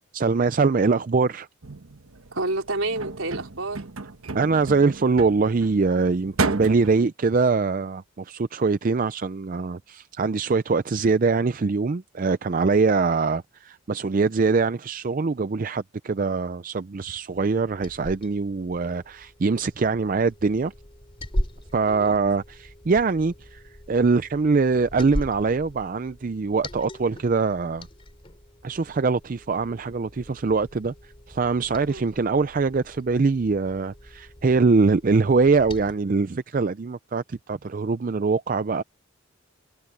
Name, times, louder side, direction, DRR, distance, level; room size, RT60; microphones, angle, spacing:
voice 1, 0.1-1.5 4.3-20.7 21.7-27.9 28.6-38.8, right 4 dB, 40° right, 0.4 m, -23 dB
sound 1, 1.6-7.1, right 3 dB, 90° right, 1.2 m, -33 dB
voice 2, 2.3-3.8 21.9-22.2 31.9-32.1, right 2 dB, 70° right, 4.3 m, -29 dB
Liquid, 17.3-35.9, equal, 25° left, 3.8 m, -39 dB
head